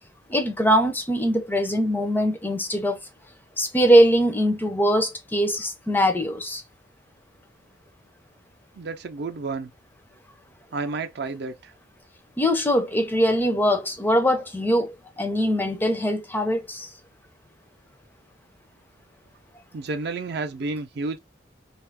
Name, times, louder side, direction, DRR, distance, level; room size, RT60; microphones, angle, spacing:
voice 1, 0.3-3.0 3.6-6.6 12.4-16.9, equal, 10° left, 0.4 m, -22 dB
voice 2, 8.8-9.7 10.7-11.7 19.7-21.2, right 3 dB, 55° right, 0.4 m, -31 dB
2.7 x 2.4 x 3.3 m
head